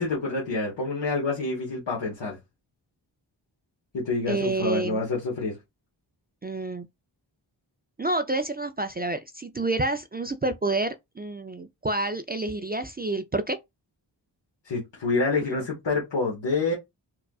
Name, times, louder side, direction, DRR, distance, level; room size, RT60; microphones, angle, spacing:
voice 1, 0.0-2.4 3.9-5.6 14.6-16.7, left 3 dB, 70° left, 1.4 m, -27 dB
voice 2, 4.3-5.0 6.4-6.9 8.0-13.6, right 2 dB, 25° right, 0.3 m, -28 dB
4.7 x 2.4 x 2.3 m
wide cardioid pair, 75°, 45 cm